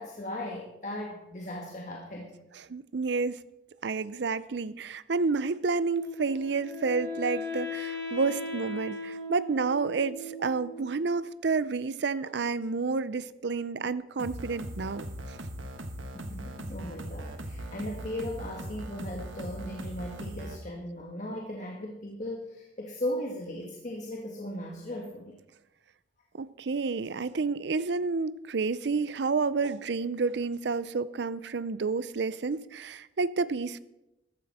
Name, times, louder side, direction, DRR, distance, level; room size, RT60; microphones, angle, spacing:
voice 1, 0.0-2.3 16.1-25.4, left 1 dB, 40° left, 1.5 m, -37 dB
voice 2, 2.7-3.4 3.8-15.0 26.4-33.8, right 4 dB, 60° right, 0.5 m, -30 dB
Wind instrument woodwind instrument, 6.0-11.0, left 2 dB, 15° left, 3.8 m, -38 dB
sound 1, 14.2-20.6, right 1 dB, 85° right, 1.5 m, -39 dB
14.5 x 12.0 x 4.2 m
head